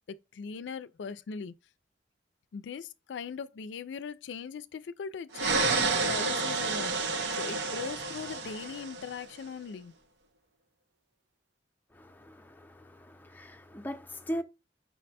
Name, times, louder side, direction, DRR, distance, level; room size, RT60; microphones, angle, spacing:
voice 1, 0.1-1.5 2.5-9.9, left 6 dB, 80° left, 0.4 m, -40 dB
sound 1, 5.3-9.2, right 3 dB, 75° right, 0.8 m, -30 dB
voice 2, 11.9-14.4, equal, 10° left, 0.5 m, -39 dB
5.7 x 2.2 x 4.1 m
head